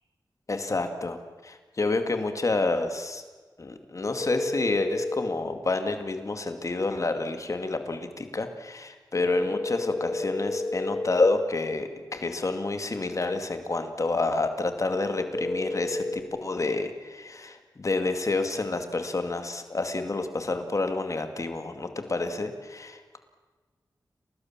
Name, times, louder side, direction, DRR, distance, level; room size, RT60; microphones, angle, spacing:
voice 1, 0.5-3.2 3.6-23.2, left 3 dB, 45° left, 7 dB, 2.3 m, -29 dB
sound 1, 4.2-5.3 9.3-11.3 15.3-16.2, left 2 dB, 20° left, 1.9 m, -30 dB
30.0 x 19.0 x 7.4 m, 1.4 s
wide cardioid pair, 85°, 7 cm